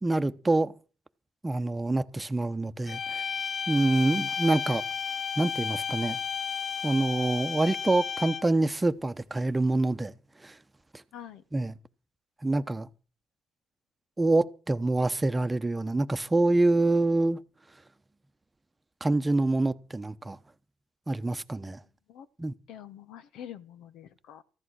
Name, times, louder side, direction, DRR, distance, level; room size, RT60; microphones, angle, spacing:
voice 1, 0.0-0.7 1.4-3.2 3.7-4.8 5.4-6.2 6.8-10.1 10.4-10.5 11.5-11.7 12.4-12.9 14.2-17.4 19.0-20.4 21.1-21.8 22.4-22.5, right 2 dB, 20° right, 1.0 m, -26 dB
sound 1, 2.9-8.6, left 6 dB, 55° left, 0.7 m, -33 dB
voice 2, 11.1-11.4 22.1-22.3 22.7-24.4, left 10 dB, 75° left, 1.1 m, -45 dB
14.5 x 11.0 x 6.4 m
supercardioid pair, 65°, 0 cm